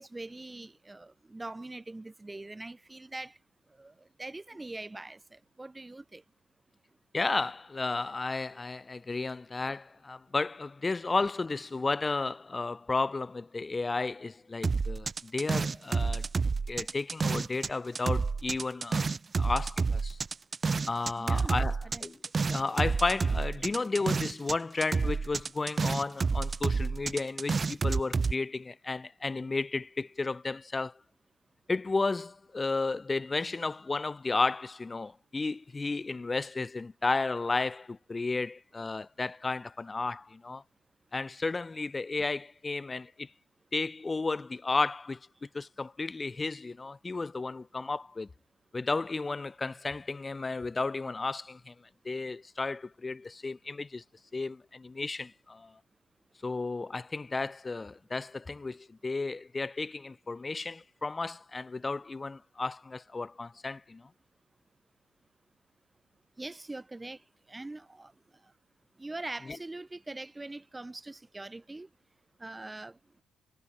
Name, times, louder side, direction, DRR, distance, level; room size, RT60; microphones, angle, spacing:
voice 1, 0.0-3.4 3.8-6.2 21.2-22.1 66.4-67.2 67.5-68.1 69.0-71.9 72.4-73.0, right 2 dB, 15° right, 1.3 m, -43 dB
voice 2, 7.1-16.3 16.7-19.1 19.4-20.2 20.9-22.2 22.5-31.0 31.7-40.6 41.1-43.3 43.7-45.2 45.5-48.3 48.7-51.7 52.0-54.0 54.3-55.8 56.4-64.1, left 3 dB, 25° left, 1.0 m, -33 dB
sound 1, 14.6-17.7 18.0-24.6 24.8-28.3, right 4 dB, 35° right, 0.3 m, -29 dB
supercardioid pair, 75°, 0 cm